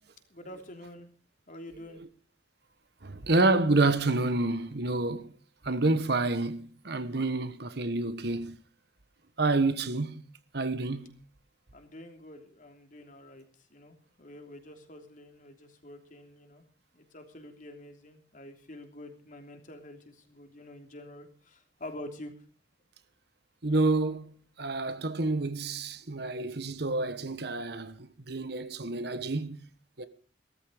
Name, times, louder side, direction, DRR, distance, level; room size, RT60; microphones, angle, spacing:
voice 1, 0.3-1.1 1.5-2.0 11.7-13.4 13.7-16.6 16.9-22.3, left 1 dB, 45° left, 3.1 m, -47 dB
voice 2, 3.0-5.3 5.6-8.6 9.4-10.2 10.5-11.1 23.6-24.3 24.6-29.6 30.0-30.1, right 2 dB, 65° right, 1.3 m, -28 dB
17.0 x 14.0 x 5.2 m
head